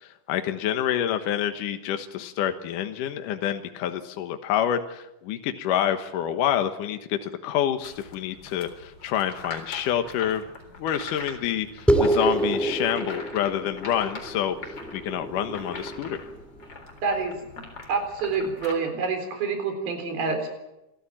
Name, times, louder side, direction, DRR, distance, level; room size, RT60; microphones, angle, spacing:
voice 1, 0.0-10.4 10.8-16.3, left 10 dB, 70° left, 7 dB, 2.6 m, -27 dB
sound 1, 7.8-18.7, left 3 dB, 30° left, 4.3 m, -42 dB
sound 2, 11.9-16.7, right 1 dB, ahead, 1.5 m, -27 dB
voice 2, 17.0-17.4 17.9-20.5, right 4 dB, 85° right, 5 dB, 5.8 m, -27 dB
27.5 x 14.5 x 8.8 m, 0.90 s
omnidirectional pair, 4.1 m